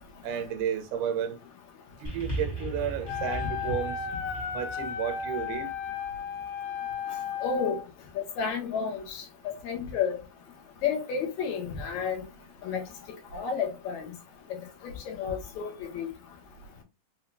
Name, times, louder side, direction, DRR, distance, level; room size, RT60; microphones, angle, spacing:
voice 1, 0.2-1.4 2.0-4.0 4.5-5.7, right 8 dB, 75° right, 2.2 m, -32 dB
sound 1, 2.0-6.6 7.4-7.5, right 1 dB, 25° left, 1.3 m, -39 dB
Wind instrument woodwind instrument, 3.0-7.8, left 7 dB, 85° left, 2.5 m, -34 dB
voice 2, 7.4-7.8 8.2-9.2 9.6-10.2 10.8-12.2 12.6-12.8 13.3-14.1 14.8-16.1, left 6 dB, 65° left, 2.2 m, -31 dB
5.8 x 2.7 x 2.4 m
omnidirectional pair, 4.0 m